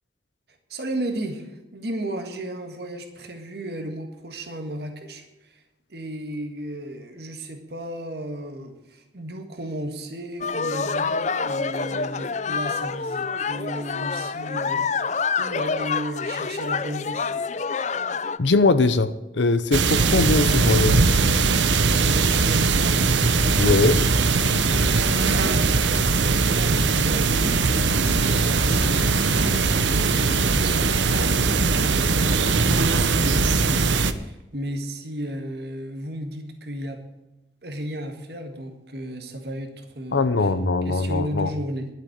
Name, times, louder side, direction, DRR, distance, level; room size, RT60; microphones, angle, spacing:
voice 1, 0.7-5.6 5.9-15.1 15.4-17.3 22.0-23.1 25.3-37.0 37.6-40.5 40.8-41.9, right 1 dB, 60° right, 4 dB, 1.8 m, -34 dB
sound 1, 10.4-18.4, left 5 dB, 40° left, 0.5 m, -27 dB
voice 2, 18.4-21.1 23.6-24.0 40.1-41.5, left 3 dB, 85° left, 11 dB, 0.8 m, -21 dB
sound 2, 19.7-34.1, right 4 dB, 90° right, 0.9 m, -20 dB
sound 3, 23.5-31.5, equal, 10° right, 2.3 m, -34 dB
12.0 x 7.5 x 9.5 m, 0.96 s
head